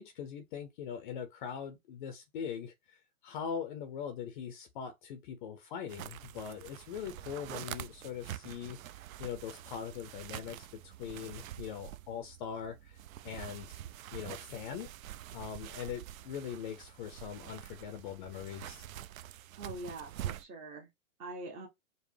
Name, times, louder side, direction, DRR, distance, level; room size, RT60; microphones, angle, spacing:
voice 1, 0.0-8.8 9.2-13.8 14.1-14.9 15.3-18.9, left 8 dB, 35° left, 0.5 m, -42 dB
sound 1, 5.9-20.4, right 12 dB, 75° right, 0.5 m, -46 dB
voice 2, 19.6-20.9 21.2-21.7, right 2 dB, 20° right, 0.6 m, -43 dB
5.1 x 2.1 x 3.1 m
hypercardioid pair, 130°, 42 cm